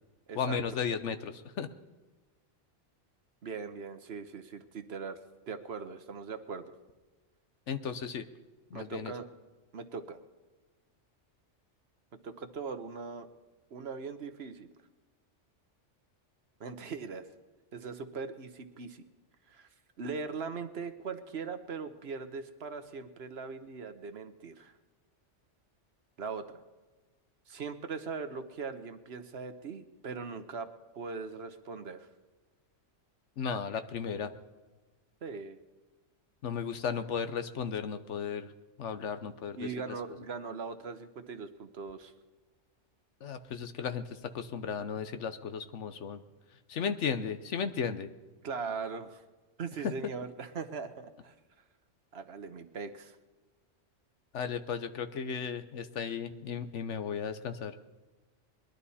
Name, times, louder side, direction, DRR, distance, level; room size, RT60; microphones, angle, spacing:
voice 1, 0.3-1.7 7.7-8.3 8.7-9.1 33.4-34.3 36.4-38.5 38.8-39.7 43.2-44.0 44.3-46.2 46.7-48.1 49.8-49.9 54.3-57.7, left 6 dB, 75° left, 9 dB, 1.2 m, -35 dB
voice 2, 3.4-6.7 8.7-9.3 9.7-10.2 12.2-13.3 13.7-14.7 16.6-17.2 17.7-19.0 19.5-19.7 20.0-24.7 26.2-26.6 27.5-30.7 30.9-32.1 35.2-35.6 39.6-42.1 48.4-49.2 49.6-51.3 52.1-53.2, right 5 dB, 60° right, 9 dB, 1.2 m, -40 dB
21.5 x 12.0 x 4.2 m, 1.2 s
omnidirectional pair, 1.2 m